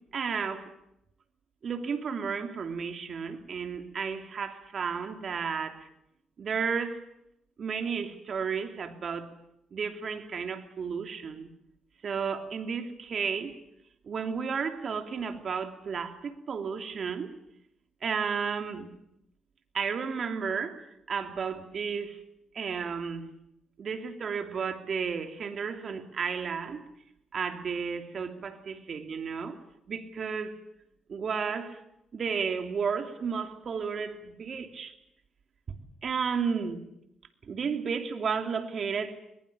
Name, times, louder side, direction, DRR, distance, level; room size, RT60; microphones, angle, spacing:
voice 1, 0.1-0.7 1.6-5.9 6.4-7.0 7.6-9.3 9.7-11.5 12.0-13.6 14.0-17.3 18.0-18.9 19.7-22.2 22.5-23.3 23.8-26.9 27.3-29.6 29.9-30.5 31.1-31.8 32.1-34.9 35.7-36.9 37.4-39.1, right 6 dB, 50° right, 3.0 m, -33 dB
22.0 x 21.0 x 8.6 m
cardioid pair, 90°, 0 cm